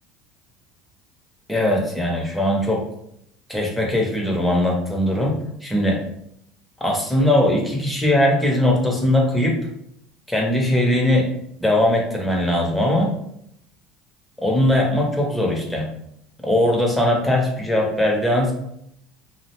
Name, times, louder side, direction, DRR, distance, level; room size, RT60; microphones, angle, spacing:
voice 1, 1.5-2.8 3.5-6.0 6.8-9.6 10.3-11.3 11.6-13.1 14.4-15.9 16.4-18.5, left 1 dB, 5° left, -1 dB, 0.8 m, -20 dB
2.5 x 2.1 x 2.9 m, 0.74 s
supercardioid pair, 90°, 0 cm